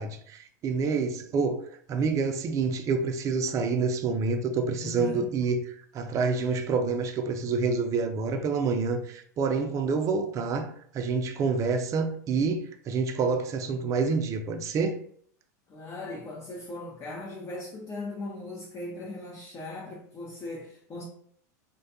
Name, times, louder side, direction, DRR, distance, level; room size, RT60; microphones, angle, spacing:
voice 1, 0.0-1.6 1.9-5.6 5.9-15.0, right 4 dB, 35° right, 0.4 m, -27 dB
voice 2, 4.8-5.3 15.7-21.0, left 2 dB, 30° left, 0.5 m, -38 dB
2.6 x 2.2 x 2.6 m
hypercardioid pair, 95°, 9 cm